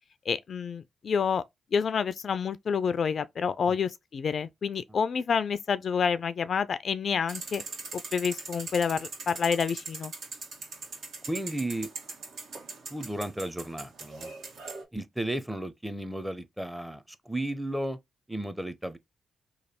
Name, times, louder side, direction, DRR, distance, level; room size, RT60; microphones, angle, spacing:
voice 1, 0.3-1.4 1.7-7.6 7.9-10.1, left 6 dB, 60° left, 0.3 m, -28 dB
sound 1, 7.3-14.8, right 3 dB, 70° right, 1.4 m, -41 dB
voice 2, 11.3-11.9 12.9-14.3 14.9-18.0 18.3-19.0, right 1 dB, 5° right, 0.7 m, -34 dB
3.2 x 2.3 x 4.2 m
hypercardioid pair, 45°, 0 cm